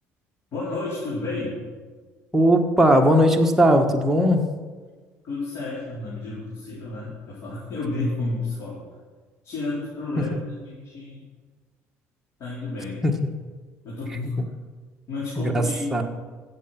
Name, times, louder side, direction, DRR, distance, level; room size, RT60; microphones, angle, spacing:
voice 1, 0.5-1.6 5.2-8.8 9.4-11.2 12.4-13.1 13.8-14.4 15.1-15.9, left 2 dB, 55° left, -8 dB, 4.6 m, -31 dB
voice 2, 2.3-4.5 13.0-13.1 15.4-15.6 15.9-16.0, equal, 5° right, 2 dB, 1.5 m, -18 dB
14.5 x 8.0 x 6.0 m, 1.4 s
cardioid pair, 110°, 6 cm